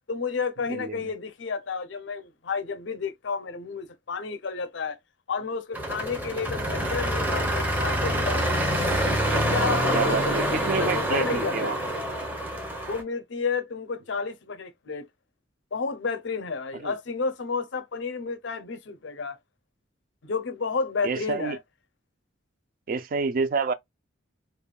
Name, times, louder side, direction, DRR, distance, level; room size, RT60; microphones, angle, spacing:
voice 1, 0.1-5.0 5.3-8.8 9.3-11.8 12.9-15.1 15.7-19.4 20.2-21.6, left 5 dB, 60° left, 0.5 m, -31 dB
voice 2, 0.7-1.0 6.7-6.8 9.9-11.8 16.8-16.9 21.0-21.6 22.9-23.7, right 4 dB, 45° right, 0.3 m, -28 dB
sound 1, 5.7-13.0, right 1 dB, 10° right, 0.7 m, -26 dB
3.3 x 2.1 x 2.2 m
head